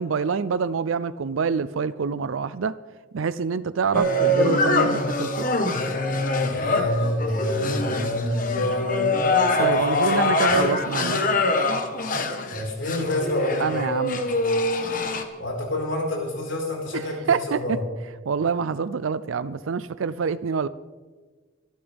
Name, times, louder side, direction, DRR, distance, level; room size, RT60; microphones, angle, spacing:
voice 1, 0.0-2.7 3.1-5.4 9.6-11.2 13.6-14.3 17.3-17.8 18.3-20.7, right 5 dB, 80° right, 15 dB, 0.5 m, -26 dB
sound 1, 3.9-15.2, left 2 dB, 40° left, 1.3 m, -24 dB
voice 2, 6.4-9.1 9.5-11.0 12.5-13.7 15.4-17.8, left 1 dB, 75° left, -1 dB, 4.8 m, -28 dB
25.0 x 12.5 x 3.5 m, 1.4 s
head